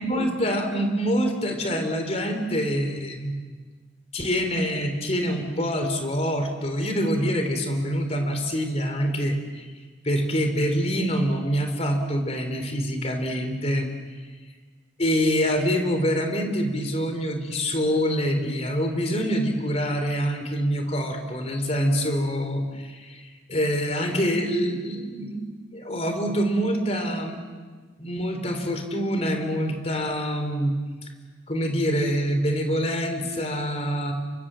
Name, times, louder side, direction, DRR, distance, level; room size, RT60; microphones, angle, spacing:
voice 1, 0.0-3.3 4.1-9.7 10.0-13.9 15.0-27.4 28.0-30.7 31.0-31.1 31.5-34.1, equal, 35° left, 6 dB, 3.6 m, -25 dB
28.5 x 24.0 x 7.6 m, 1.4 s
head